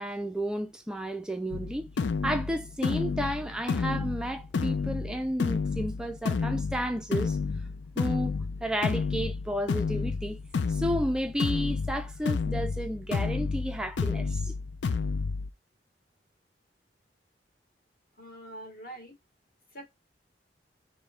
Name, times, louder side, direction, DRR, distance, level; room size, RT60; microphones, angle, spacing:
voice 1, 0.0-1.9 2.2-7.4 8.0-8.3 8.6-10.4 10.7-14.5, equal, 5° right, 0.3 m, -32 dB
sound 1, 1.5-15.5, left 4 dB, 90° left, 0.4 m, -31 dB
voice 2, 18.2-19.1 19.7-19.9, right 1 dB, 55° left, 1.9 m, -44 dB
5.2 x 2.1 x 4.2 m
head